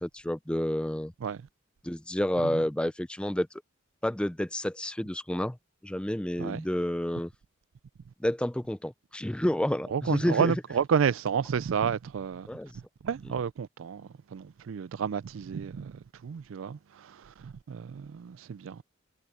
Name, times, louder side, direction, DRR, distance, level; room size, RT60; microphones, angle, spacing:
voice 1, 0.0-1.1 1.8-3.5 4.0-5.6 5.8-7.3 8.2-10.5 12.5-12.7, left 1 dB, 5° left, 0.4 m, -29 dB
voice 2, 9.9-12.5 12.7-18.8, right 7 dB, 80° right, 0.4 m, -31 dB
head